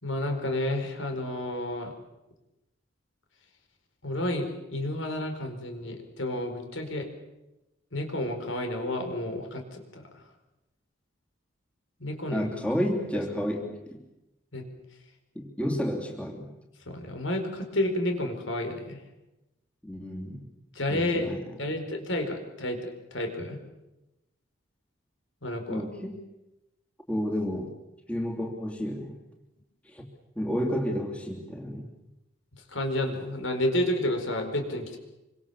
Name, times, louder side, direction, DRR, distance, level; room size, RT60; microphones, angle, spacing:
voice 1, 0.0-1.9 4.0-7.1 7.9-10.0 12.0-12.5 14.5-14.6 16.9-19.0 20.7-21.3 21.6-23.6 25.4-25.9 32.7-35.0, left 1 dB, 75° left, 5 dB, 4.8 m, -30 dB
voice 2, 12.3-14.0 15.3-16.5 19.8-20.4 20.9-21.4 25.7-26.2 27.1-27.7 28.1-29.1 29.9-30.0 30.4-31.9, equal, 5° left, 0 dB, 2.9 m, -31 dB
26.5 x 25.0 x 7.2 m, 0.95 s
head